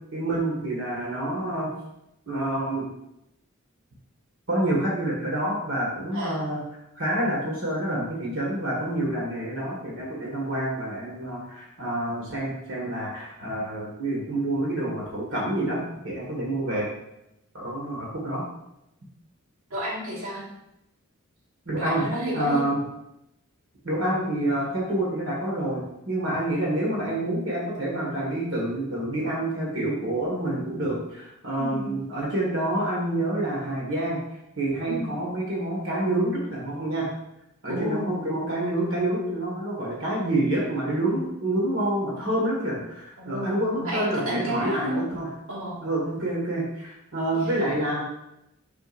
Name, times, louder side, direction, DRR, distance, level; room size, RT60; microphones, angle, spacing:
voice 1, 0.1-1.7 2.3-2.9 4.5-6.6 7.0-15.8 16.0-16.9 17.5-18.4 21.7-22.0 22.3-22.8 23.8-34.2 34.6-37.1 37.6-45.3 45.8-48.3, right 1 dB, 65° right, -4 dB, 1.8 m, -27 dB
voice 2, 19.7-20.4 21.8-22.6 31.6-31.9 34.9-35.2 37.7-38.2 43.2-45.0 45.5-45.8 47.3-47.6, equal, 85° right, -5 dB, 2.0 m, -31 dB
6.4 x 6.2 x 2.6 m, 0.85 s
head